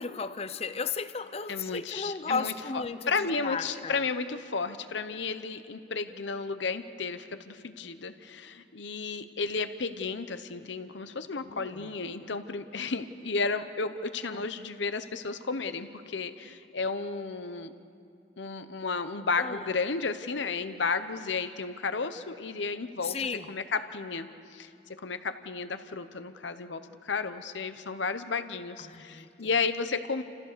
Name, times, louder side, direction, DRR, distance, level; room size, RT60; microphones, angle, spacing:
voice 1, 0.0-4.0 11.4-11.9 14.3-14.5 19.4-19.7 23.0-23.5 28.8-29.5, left 5 dB, 30° left, 12 dB, 0.6 m, -35 dB
voice 2, 1.5-2.5 3.1-17.7 18.4-23.2 23.5-24.7 25.0-30.2, left 4 dB, 70° left, 10 dB, 0.9 m, -33 dB
29.0 x 15.5 x 6.8 m, 2.5 s
head